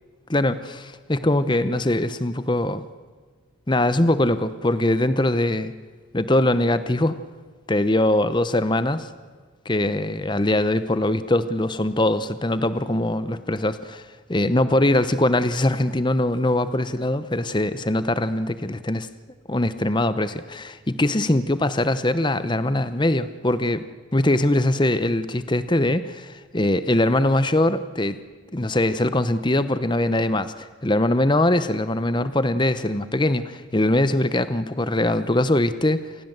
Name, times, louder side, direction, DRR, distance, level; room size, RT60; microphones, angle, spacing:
voice 1, 0.3-2.8 3.7-5.7 6.1-7.2 7.7-9.1 9.6-19.1 19.5-23.8 24.1-28.2 28.5-36.0, left 1 dB, 20° left, 13 dB, 0.8 m, -22 dB
28.0 x 20.0 x 8.0 m, 1.5 s
head